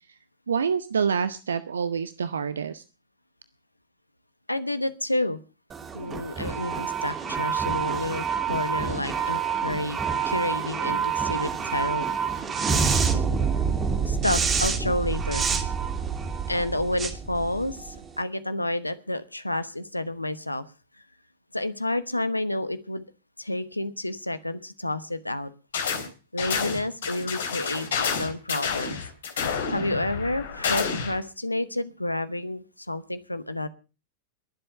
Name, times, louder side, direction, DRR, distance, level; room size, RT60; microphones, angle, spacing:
voice 1, 0.5-2.8, right 6 dB, 70° right, 15 dB, 0.8 m, -27 dB
voice 2, 4.5-5.4 5.9-10.0 10.2-12.1 14.1-15.5 16.5-20.6 21.5-23.0 23.4-25.5 26.3-29.0 29.3-33.7, left 1 dB, 85° left, 13 dB, 1.1 m, -30 dB
sound 1, 5.7-18.1, right 6 dB, 20° right, 2.6 m, -27 dB
sound 2, 25.7-26.1 26.4-31.2, left 6 dB, 65° left, 3.4 m, -29 dB
22.0 x 7.8 x 6.7 m, 0.34 s
figure-of-eight pair, 90°, 0 cm